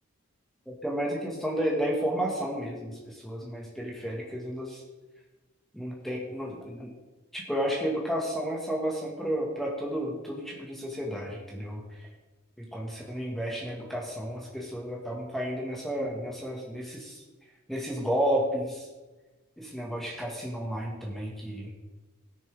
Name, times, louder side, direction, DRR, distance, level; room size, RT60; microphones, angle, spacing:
voice 1, 0.7-4.8 5.7-6.9 7.3-11.8 12.6-17.2 17.7-18.8 19.6-21.7, equal, ahead, -3 dB, 1.8 m, -32 dB
19.0 x 6.9 x 3.6 m, 1.2 s
head